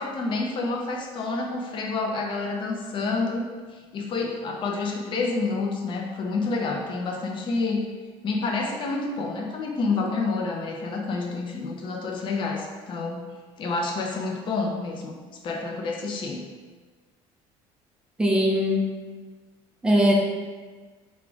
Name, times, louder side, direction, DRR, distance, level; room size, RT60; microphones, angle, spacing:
voice 1, 0.0-3.5 3.9-7.8 8.2-13.3 13.6-15.2 15.4-16.4, left 3 dB, 40° left, 1 dB, 0.7 m, -28 dB
voice 2, 18.2-18.8 19.8-20.1, equal, 5° right, -2 dB, 0.7 m, -20 dB
4.2 x 2.4 x 4.5 m, 1.4 s
cardioid pair, 135°, 12 cm